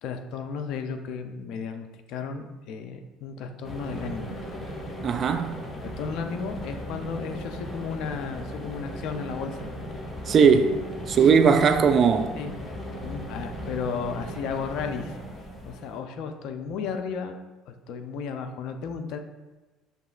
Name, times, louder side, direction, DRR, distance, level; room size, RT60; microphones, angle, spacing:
voice 1, 0.0-4.4 5.8-9.7 11.2-11.3 12.3-12.5 13.0-15.2 15.6-17.4 17.7-19.2, left 5 dB, 65° left, 0.4 m, -34 dB
sound 1, 3.6-16.0, equal, 30° left, 0.9 m, -37 dB
voice 2, 5.0-5.6 10.3-10.8 11.1-12.4, right 6 dB, 45° right, 0.4 m, -19 dB
6.6 x 2.9 x 2.4 m
hypercardioid pair, 75°, 0 cm